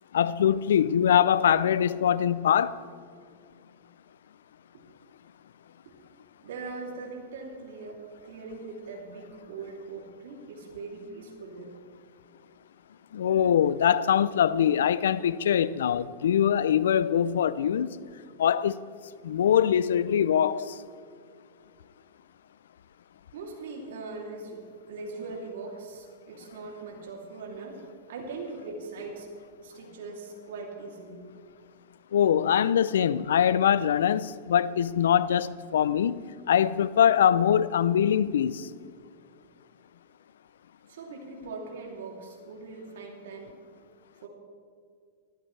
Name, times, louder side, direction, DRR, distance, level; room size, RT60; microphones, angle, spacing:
voice 1, 0.1-2.8 13.1-18.0 18.4-18.8 19.2-20.8 32.1-36.2 36.5-38.7, left 9 dB, 85° left, 0.4 m, -23 dB
voice 2, 6.4-11.7 23.3-29.3 29.6-31.2 40.9-43.5 44.2-44.3, right 3 dB, 80° right, 2.9 m, -41 dB
19.5 x 13.5 x 3.3 m
hypercardioid pair, 125°, 0 cm